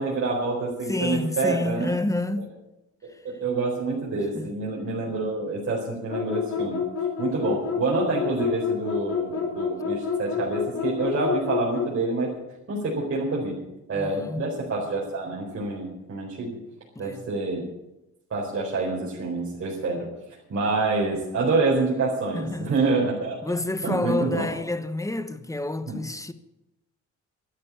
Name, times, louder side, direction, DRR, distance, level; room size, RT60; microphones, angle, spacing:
voice 1, 0.0-1.9 3.2-6.8 7.2-12.3 12.7-13.6 13.9-16.6 17.0-17.6 18.3-20.1 20.5-23.4 23.8-24.5 25.9-26.0, right 3 dB, 50° right, 4.4 m, -27 dB
voice 2, 0.9-2.5 4.1-4.5 6.6-6.7 13.9-14.5 16.9-17.2 22.3-22.7 23.4-26.3, left 2 dB, 10° left, 1.1 m, -29 dB
sound 1, 6.1-11.9, left 6 dB, 55° left, 4.7 m, -28 dB
12.0 x 11.0 x 8.6 m
cardioid pair, 90°, 30 cm